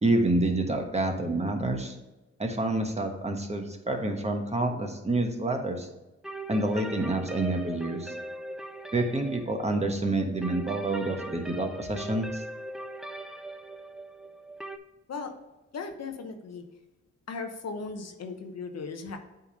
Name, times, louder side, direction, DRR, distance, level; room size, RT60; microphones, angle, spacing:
voice 1, 0.0-1.9 2.4-5.9 6.5-8.1 8.9-12.4, right 2 dB, 20° right, 3 dB, 1.2 m, -28 dB
sound 1, 6.2-14.8, right 1 dB, ahead, 0.5 m, -40 dB
voice 2, 15.7-16.6 17.3-19.2, left 4 dB, 60° left, 6 dB, 1.0 m, -37 dB
8.3 x 3.4 x 5.3 m, 1.0 s
cardioid pair, 75°, 29 cm